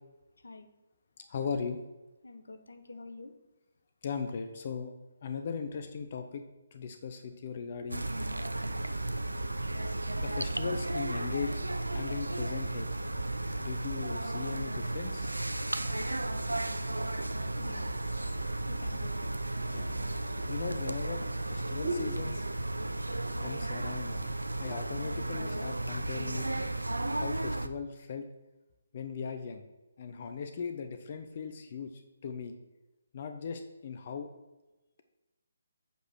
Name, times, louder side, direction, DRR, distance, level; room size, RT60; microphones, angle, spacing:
voice 1, 1.2-1.8 4.0-4.9 5.2-6.5 6.7-8.0 10.2-11.6 11.9-13.0 13.6-15.3 19.7-19.9 20.5-22.4 23.4-24.3 24.6-26.5 27.1-28.3 28.9-29.6 30.0-31.9 32.2-32.5 33.1-34.3, left 6 dB, 45° left, 7 dB, 0.8 m, -38 dB
voice 2, 2.2-3.3 16.8-20.6, left 3 dB, 70° left, 9 dB, 0.9 m, -50 dB
sound 1, 7.9-27.7, right 2 dB, 85° right, 0.5 m, -34 dB
sound 2, 19.8-22.9 23.2-23.6 24.0-24.1 24.4-25.1 25.8-26.5 27.2-27.3, right 2 dB, 55° right, 1.9 m, -42 dB
8.0 x 5.1 x 6.2 m, 1.1 s
figure-of-eight pair, 140°, 0 cm